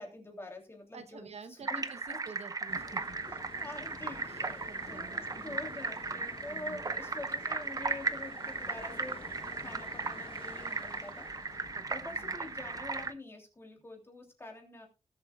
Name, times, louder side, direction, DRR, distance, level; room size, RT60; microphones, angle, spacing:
voice 1, 0.0-2.2 3.2-11.3 11.5-14.9, left 2 dB, 20° left, 1 dB, 3.1 m, -46 dB
voice 2, 0.9-3.2 4.2-5.6 6.1-6.2 6.5-6.8 11.7-12.4, right 5 dB, 65° right, 9 dB, 1.0 m, -50 dB
sound 1, 1.6-13.1, right 4 dB, 30° right, 0.7 m, -37 dB
sound 2, 2.7-13.1, left 4 dB, 50° left, 1.1 m, -51 dB
19.5 x 8.1 x 2.4 m, 0.28 s
wide cardioid pair, 180°, 12 cm